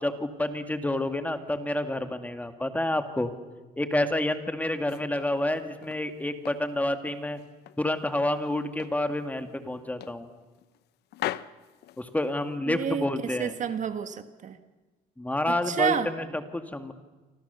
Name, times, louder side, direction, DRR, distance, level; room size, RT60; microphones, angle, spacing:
voice 1, 0.0-3.3 3.8-7.4 7.8-10.3 12.0-13.6 15.2-16.9, left 1 dB, 10° left, 7 dB, 2.1 m, -29 dB
sound 1, 4.6-6.1 6.5-7.9 8.2-9.0 9.4-9.6 10.0-10.8 11.1-12.6, left 14 dB, 75° left, 0.8 m, -39 dB
voice 2, 12.7-13.0 13.4-14.6 15.5-16.1, right 7 dB, 45° right, 9 dB, 1.6 m, -29 dB
29.0 x 25.0 x 6.9 m, 1.2 s
cardioid pair, 110°, 17 cm